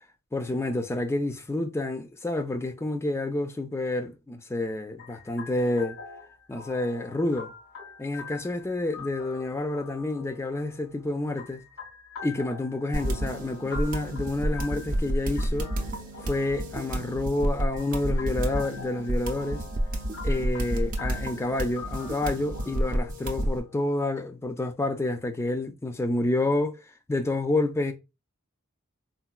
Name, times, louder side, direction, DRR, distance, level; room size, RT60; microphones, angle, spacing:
voice 1, 0.3-6.0 6.5-7.5 8.0-11.6 12.2-15.7 16.2-19.6 20.2-26.8 27.1-27.9, left 2 dB, 10° left, 0.3 m, -29 dB
sound 1, 5.0-24.2, left 5 dB, 85° left, 1.9 m, -45 dB
sound 2, 12.9-23.6, right 1 dB, 40° right, 0.6 m, -30 dB
3.9 x 2.2 x 2.3 m
head